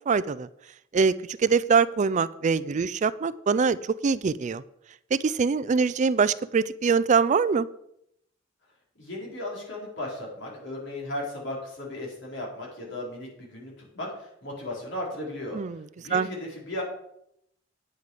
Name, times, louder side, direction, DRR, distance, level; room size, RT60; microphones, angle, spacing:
voice 1, 0.1-0.5 0.9-4.6 5.1-7.7 15.5-15.8 16.1-16.3, right 5 dB, 40° right, 17 dB, 0.4 m, -23 dB
voice 2, 9.0-15.6 16.0-16.9, left 1 dB, 65° left, -3 dB, 4.7 m, -36 dB
9.7 x 9.5 x 5.0 m, 0.76 s
head